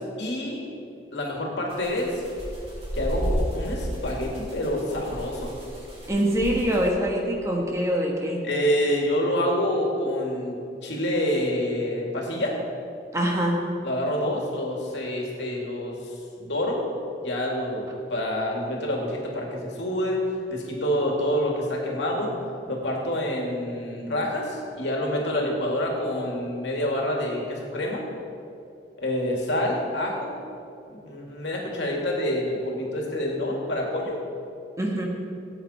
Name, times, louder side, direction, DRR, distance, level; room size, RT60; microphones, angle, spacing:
voice 1, 0.2-0.7 1.1-2.2 2.9-5.5 8.4-12.6 13.8-16.8 17.2-20.2 20.5-22.3 22.7-28.0 29.0-30.3 30.9-34.2, left 1 dB, 75° left, -1 dB, 2.4 m, -27 dB
sound 1, 1.7-6.9, right 1 dB, 30° right, 2.9 m, -33 dB
voice 2, 6.1-8.4 13.1-13.6 34.8-35.1, equal, 15° right, -1 dB, 1.4 m, -24 dB
17.5 x 8.6 x 4.4 m, 2.6 s
head